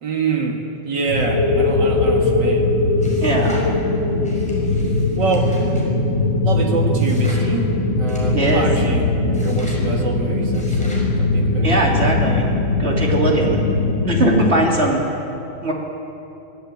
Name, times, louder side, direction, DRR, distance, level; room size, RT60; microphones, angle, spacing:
voice 1, 0.0-0.6 0.8-2.7 5.2-5.5 6.4-7.7 8.0-9.1 9.4-11.8 13.1-13.3, right 4 dB, 60° right, 1 dB, 2.9 m, -25 dB
sound 1, 1.1-14.5, left 2 dB, 65° left, 5.4 m, -20 dB
sound 2, 3.0-3.7 4.2-5.9 7.0-7.5 8.1-8.6 9.3-9.8 10.5-11.1, left 1 dB, 5° left, 5.6 m, -42 dB
voice 2, 3.2-3.6 8.3-8.6 11.6-12.4 12.8-13.6 14.0-15.0 15.6-15.7, right 1 dB, 30° right, -2 dB, 3.5 m, -19 dB
25.0 x 14.5 x 8.8 m, 2.9 s
omnidirectional pair, 2.2 m